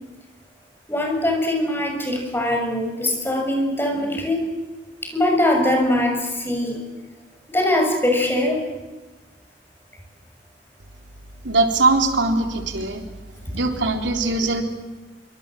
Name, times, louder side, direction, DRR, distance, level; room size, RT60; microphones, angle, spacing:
voice 1, 0.9-4.5 5.0-6.8 7.5-8.6, left 1 dB, 10° left, 2 dB, 6.7 m, -22 dB
voice 2, 11.4-13.0 13.5-14.6, right 3 dB, 85° right, 4 dB, 3.7 m, -21 dB
27.0 x 25.5 x 7.7 m, 1.2 s
head